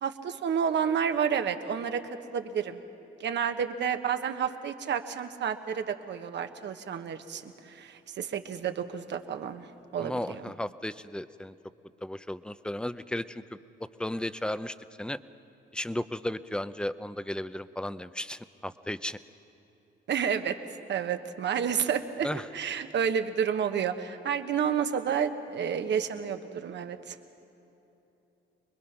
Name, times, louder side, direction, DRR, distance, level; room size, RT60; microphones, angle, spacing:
voice 1, 0.0-2.0 2.3-2.8 3.2-9.7 9.9-10.4 20.1-20.6 20.9-27.2, right 7 dB, 65° right, 8 dB, 1.2 m, -30 dB
voice 2, 10.0-11.5 12.0-13.4 14.0-15.2 15.7-19.2 22.2-22.4, left 1 dB, 5° left, 14 dB, 0.6 m, -34 dB
26.0 x 21.0 x 5.9 m, 3.0 s
cardioid pair, 90°, 20 cm